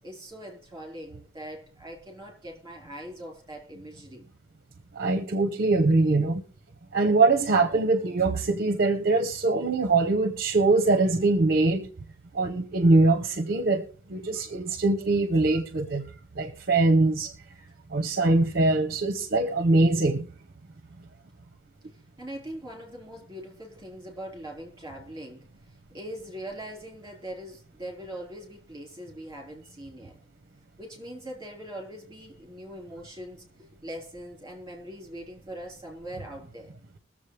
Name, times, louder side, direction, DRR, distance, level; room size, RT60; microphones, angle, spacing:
voice 1, 0.0-4.3 21.9-30.2 30.8-36.7, equal, 15° right, 4.2 m, -41 dB
voice 2, 5.0-6.4 6.9-11.9 12.3-13.8 14.1-16.0 16.4-17.3 17.9-20.3, right 3 dB, 50° right, 0.8 m, -23 dB
21.5 x 7.3 x 3.3 m
head